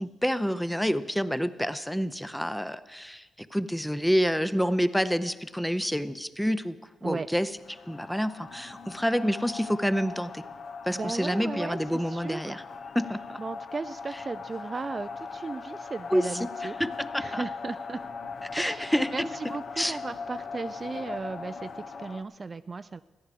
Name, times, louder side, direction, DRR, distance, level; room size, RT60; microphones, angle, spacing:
voice 1, 0.0-6.8 7.0-10.4 10.9-12.6 12.9-13.4 16.1-16.5 16.8-17.4 18.5-19.3 19.8-20.0, equal, 5° left, 13 dB, 0.6 m, -28 dB
sound 1, 7.6-22.2, left 4 dB, 60° left, 0.8 m, -40 dB
voice 2, 10.9-12.6 13.4-16.8 17.2-18.0 18.6-23.0, right 4 dB, 35° right, 13 dB, 0.3 m, -36 dB
14.0 x 10.0 x 6.6 m, 1.3 s
cardioid pair, 75°, 0 cm